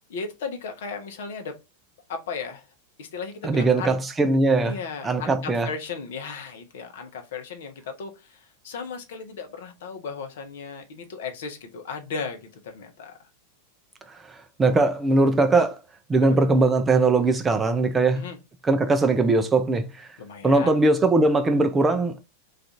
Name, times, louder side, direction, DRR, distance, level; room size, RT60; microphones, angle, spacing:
voice 1, 0.1-1.6 2.1-2.7 3.0-4.0 4.6-13.1 16.2-16.4 18.1-18.4 20.2-20.8, left 5 dB, 55° left, 0.7 m, -36 dB
voice 2, 3.4-4.8 5.0-5.7 14.3-15.8 16.1-18.2 18.6-20.1 20.4-22.2, right 3 dB, 15° right, 0.3 m, -20 dB
2.4 x 2.4 x 4.1 m
figure-of-eight pair, 90°, 0 cm